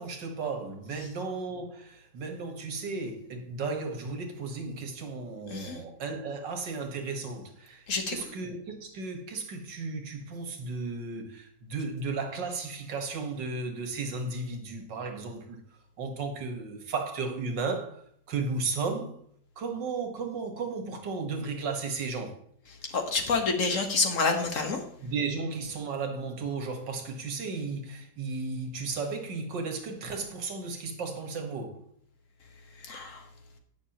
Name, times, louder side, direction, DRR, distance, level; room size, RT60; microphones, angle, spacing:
voice 1, 0.0-15.6 16.0-18.0 18.3-19.2 19.6-22.4 25.0-31.8, right 4 dB, 85° right, 2.1 m, -34 dB
voice 2, 5.5-5.8 7.9-8.2 22.9-24.8 32.8-33.3, left 4 dB, 50° left, 1.6 m, -28 dB
17.5 x 6.2 x 2.9 m
omnidirectional pair, 1.9 m